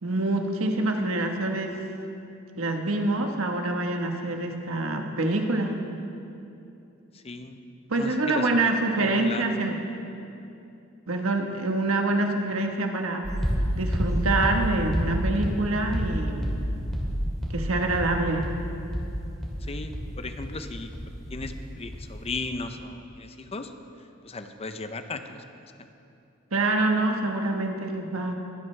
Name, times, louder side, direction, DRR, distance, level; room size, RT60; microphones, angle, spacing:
voice 1, 0.0-1.8 2.6-5.7 7.9-9.8 11.1-13.3 13.8-16.5 17.5-18.5 26.5-28.3, right 2 dB, 75° right, 3 dB, 1.3 m, -26 dB
voice 2, 7.2-7.6 8.0-8.7 9.0-9.4 19.6-20.9 21.3-23.7 24.2-25.4 25.8-25.9, left 3 dB, 30° left, 8 dB, 0.6 m, -36 dB
sound 1, 13.2-21.7 21.9-22.5, equal, 5° left, 2.2 m, -29 dB
21.0 x 12.0 x 3.3 m, 2.7 s
head